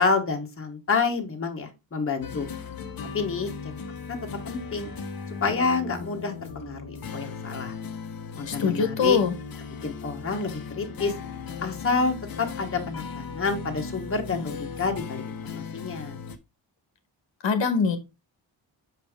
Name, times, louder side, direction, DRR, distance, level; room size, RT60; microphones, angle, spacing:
voice 1, 0.0-2.5 3.1-3.5 4.1-4.2 4.5-4.9 5.4-7.7 8.4-9.2 9.8-11.1 11.6-15.2 15.5-16.2, left 4 dB, 30° left, 3 dB, 1.2 m, -28 dB
sound 1, 2.2-16.4, left 5 dB, 50° left, 1.0 m, -37 dB
voice 2, 8.5-9.3 17.4-18.0, left 5 dB, 75° left, 8 dB, 1.4 m, -23 dB
6.6 x 5.3 x 3.6 m, 0.25 s
wide cardioid pair, 150°, 46 cm